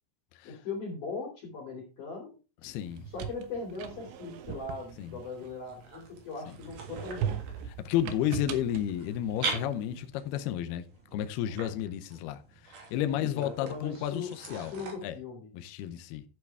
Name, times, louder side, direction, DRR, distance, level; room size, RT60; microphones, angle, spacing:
voice 1, 0.4-2.4 3.1-7.4 12.9-14.3 14.6-15.5, left 4 dB, 50° left, 3.8 m, -39 dB
voice 2, 2.6-3.1 5.0-5.2 7.7-10.8 11.1-14.7 15.0-15.1 15.5-16.2, left 11 dB, 75° left, 2.5 m, -32 dB
sound 1, 2.8-6.1 6.5-9.9, right 9 dB, 80° right, 3.4 m, -39 dB
sound 2, 5.7-14.9, right 4 dB, 50° right, 4.0 m, -43 dB
12.0 x 8.6 x 3.4 m
omnidirectional pair, 5.1 m